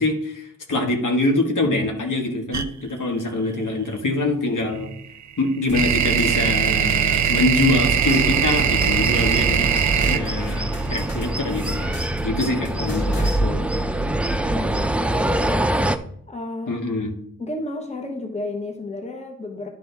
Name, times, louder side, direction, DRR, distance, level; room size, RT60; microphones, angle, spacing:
voice 1, 0.0-4.9 5.4-13.6 16.7-17.1, left 2 dB, 65° left, 2 dB, 1.6 m, -24 dB
sound 1, 2.5-2.7 4.8-11.8, right 8 dB, 55° right, 0.7 m, -21 dB
sound 2, 5.7-13.4, equal, 45° left, 2.6 m, -38 dB
sound 3, 7.8-16.0, right 1 dB, 5° right, 0.4 m, -24 dB
voice 2, 14.5-15.7 16.3-16.8 17.4-19.7, left 2 dB, 20° left, 3 dB, 1.2 m, -32 dB
11.5 x 4.2 x 3.4 m, 0.67 s
wide cardioid pair, 85°, 34 cm